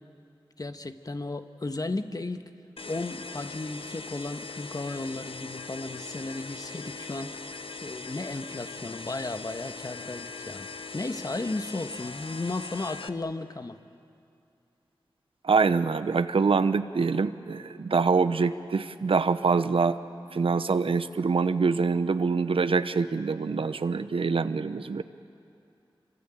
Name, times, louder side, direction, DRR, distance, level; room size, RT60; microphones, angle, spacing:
voice 1, 0.6-2.4 2.8-10.7 10.9-13.8, left 2 dB, 45° left, 8 dB, 1.3 m, -34 dB
sound 1, 2.8-13.1, left 4 dB, 85° left, 0.9 m, -41 dB
voice 2, 15.4-20.0 20.3-25.0, right 4 dB, 80° right, 12 dB, 0.8 m, -25 dB
26.0 x 25.0 x 9.0 m, 2.5 s
wide cardioid pair, 60°, 9 cm